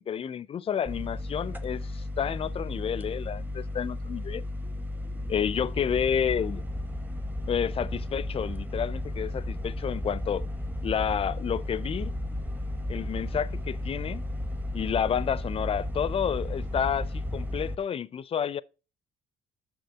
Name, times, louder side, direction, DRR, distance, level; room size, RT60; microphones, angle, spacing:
voice 1, 0.0-4.4 5.3-6.6 7.5-10.5 10.8-12.1 12.9-14.2 14.7-18.6, left 8 dB, 35° left, 0.4 m, -30 dB
sound 1, 0.9-17.8, left 1 dB, 10° right, 0.7 m, -34 dB
6.7 x 6.0 x 4.5 m
cardioid pair, 110°, 17 cm